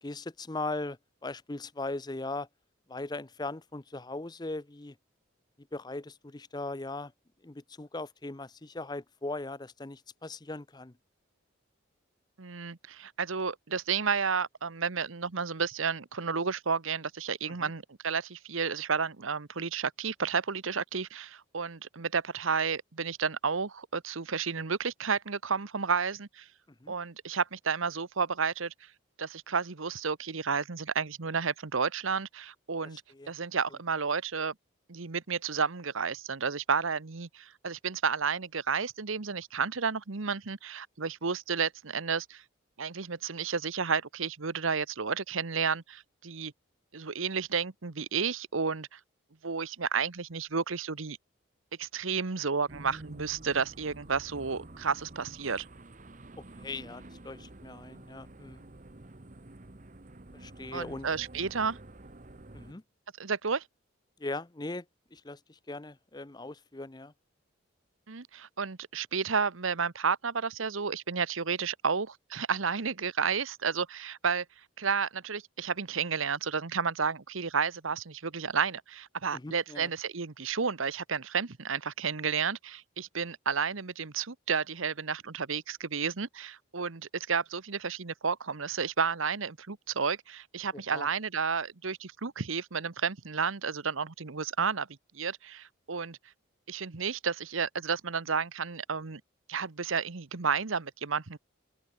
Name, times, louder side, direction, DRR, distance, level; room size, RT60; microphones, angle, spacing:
voice 1, 0.0-2.5 2.9-4.9 5.7-7.1 7.4-10.9 17.5-17.7 26.8-26.9 32.9-33.3 56.4-58.6 60.3-61.1 62.5-62.8 64.2-64.8 65.1-67.1 79.3-79.9 90.7-91.1, left 2 dB, 20° left, 0.6 m, -39 dB
voice 2, 12.4-26.5 26.9-28.7 29.2-33.0 33.3-34.5 34.9-42.4 42.8-46.5 46.9-49.0 49.4-51.2 51.8-55.7 60.7-61.8 63.2-63.6 68.1-74.4 74.8-94.9 95.1-96.2 96.7-99.2 99.5-101.4, right 5 dB, 80° right, 1.1 m, -31 dB
sound 1, 52.7-62.7, right 2 dB, 40° right, 1.1 m, -49 dB
open air
head